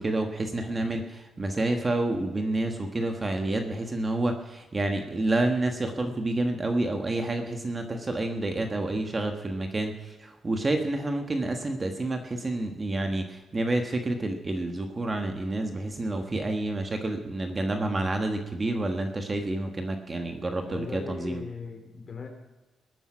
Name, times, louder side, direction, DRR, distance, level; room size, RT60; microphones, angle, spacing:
voice 1, 0.0-21.4, right 2 dB, 20° right, 5 dB, 1.4 m, -29 dB
voice 2, 20.7-22.3, left 4 dB, 40° left, 4 dB, 3.3 m, -38 dB
20.0 x 9.1 x 6.2 m, 1.1 s
wide cardioid pair, 155°, 0 cm